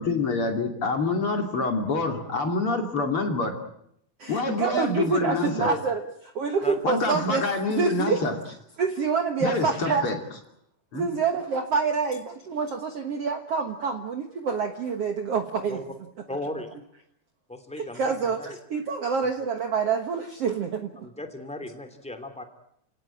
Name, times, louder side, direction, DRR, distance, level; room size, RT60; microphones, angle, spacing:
voice 1, 0.0-3.6 4.3-5.7 6.8-8.4 9.4-10.2 10.9-11.0, left 3 dB, 40° left, 4 dB, 3.4 m, -26 dB
voice 2, 4.2-6.0 6.4-8.2 8.8-10.1 10.9-15.8 17.8-21.1, right 5 dB, 55° right, 5 dB, 1.9 m, -27 dB
voice 3, 16.3-16.7 17.5-18.6 21.0-22.4, left 1 dB, ahead, 6 dB, 2.3 m, -36 dB
29.5 x 18.0 x 9.0 m, 0.74 s
omnidirectional pair, 4.2 m